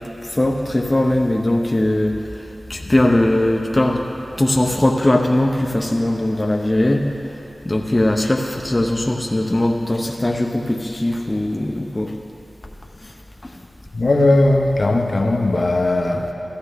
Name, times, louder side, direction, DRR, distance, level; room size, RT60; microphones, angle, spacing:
voice 1, 0.2-4.0 4.4-7.1 7.6-12.1 13.0-13.1 13.4-13.5, left 1 dB, 25° left, 0 dB, 0.7 m, -20 dB
voice 2, 13.9-16.3, left 2 dB, 50° left, 2 dB, 1.0 m, -18 dB
16.0 x 13.0 x 3.5 m, 3.0 s
wide cardioid pair, 65°, 0 cm